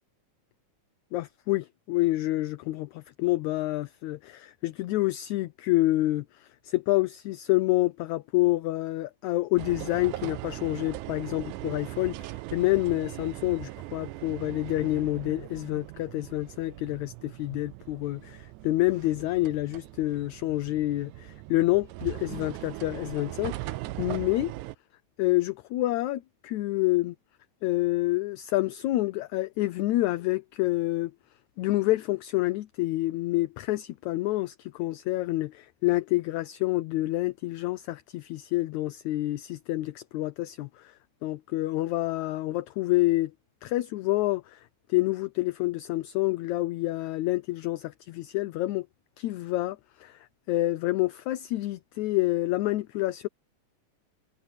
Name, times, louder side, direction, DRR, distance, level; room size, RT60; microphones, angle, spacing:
voice 1, 1.1-24.5 25.2-27.2 27.6-31.1 31.6-40.9 41.2-43.3 43.6-44.6 44.9-48.9 49.2-50.2 50.5-53.3, left 18 dB, 75° left, 1.9 m, -28 dB
sound 1, 9.6-24.7, right 18 dB, 80° right, 2.0 m, -40 dB
omnidirectional pair, 3.6 m